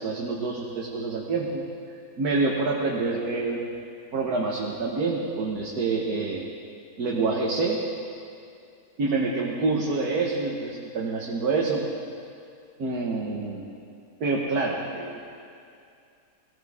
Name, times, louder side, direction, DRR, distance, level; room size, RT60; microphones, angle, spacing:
voice 1, 0.0-1.6 2.2-3.7 4.1-6.5 7.0-7.8 9.0-11.8 12.8-13.7 14.2-15.3, right 3 dB, 70° right, -2 dB, 1.8 m, -27 dB
21.0 x 17.0 x 3.6 m, 2.4 s
omnidirectional pair, 1.7 m